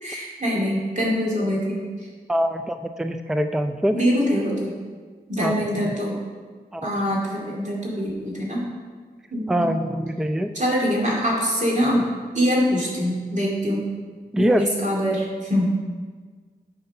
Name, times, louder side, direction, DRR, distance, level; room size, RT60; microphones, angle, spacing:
voice 1, 0.0-1.8 3.9-4.7 5.3-6.2 6.8-8.6 9.3-9.8 10.5-12.0 12.3-13.8 14.4-15.7, equal, 50° right, -4 dB, 2.4 m, -24 dB
voice 2, 2.3-4.0 5.4-5.6 5.8-5.9 6.7-6.9 9.5-10.5 14.3-14.6, equal, 5° right, 7 dB, 0.4 m, -23 dB
7.9 x 5.7 x 5.5 m, 1.5 s
wide cardioid pair, 75°, 16 cm